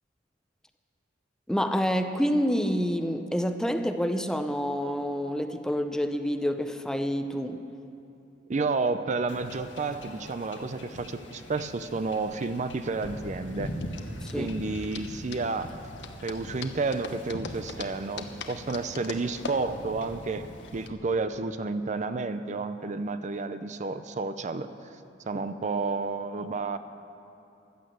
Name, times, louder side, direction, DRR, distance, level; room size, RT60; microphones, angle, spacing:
voice 1, 1.5-7.6 14.2-14.5, equal, 5° left, 8 dB, 0.6 m, -28 dB
voice 2, 8.5-13.7 14.4-15.7 16.2-20.4 20.7-24.7 25.3-26.8, right 3 dB, 40° right, 11 dB, 0.5 m, -31 dB
Wind / Ocean / Boat Water vehicle, 9.3-20.9, left 1 dB, 85° left, 1.5 m, -42 dB
sound 1, 12.2-20.9, left 4 dB, 65° left, 1.0 m, -42 dB
Thunder / Rain, 13.9-18.8, equal, 85° right, 2.1 m, -48 dB
15.0 x 11.0 x 7.8 m, 2.8 s
head